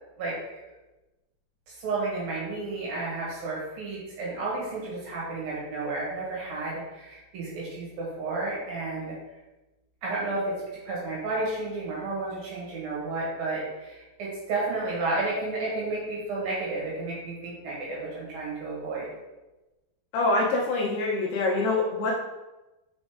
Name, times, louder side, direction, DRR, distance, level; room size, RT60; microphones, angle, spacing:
voice 1, 0.2-0.6 1.7-9.2 10.0-10.5 10.8-19.1, right 2 dB, 65° right, -5 dB, 2.9 m, -32 dB
voice 2, 20.1-22.1, left 2 dB, 75° left, -3 dB, 2.5 m, -25 dB
6.1 x 5.1 x 3.6 m, 1.1 s
omnidirectional pair, 5.1 m